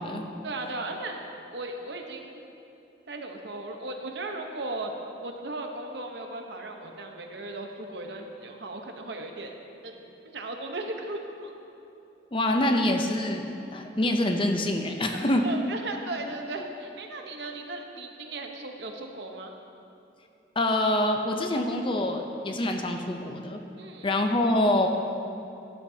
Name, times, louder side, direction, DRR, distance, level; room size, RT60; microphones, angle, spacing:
voice 1, 0.4-2.4 3.1-4.9 5.2-9.5 9.8-11.5 15.1-19.5 23.8-24.1, right 2 dB, 65° right, 3 dB, 1.0 m, -37 dB
voice 2, 12.3-15.4 20.6-23.6 24.0-24.9, left 1 dB, 25° left, 4 dB, 0.6 m, -25 dB
12.5 x 11.0 x 2.8 m, 2.8 s
head